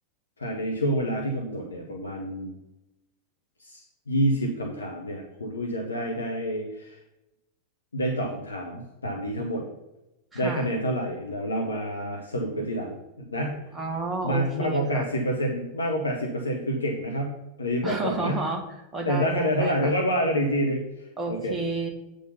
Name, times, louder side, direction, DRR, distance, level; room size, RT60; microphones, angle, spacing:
voice 1, 0.4-2.5 3.6-7.0 7.9-9.6 10.3-13.0 13.3-13.7 14.2-18.4 19.1-21.6, equal, 75° left, 1 dB, 0.9 m, -28 dB
voice 2, 10.3-10.7 13.7-15.1 17.8-18.6 18.9-19.9 21.2-21.9, right 3 dB, 10° right, 0 dB, 1.4 m, -31 dB
8.4 x 3.9 x 5.5 m, 0.93 s
figure-of-eight pair, 90°, 0 cm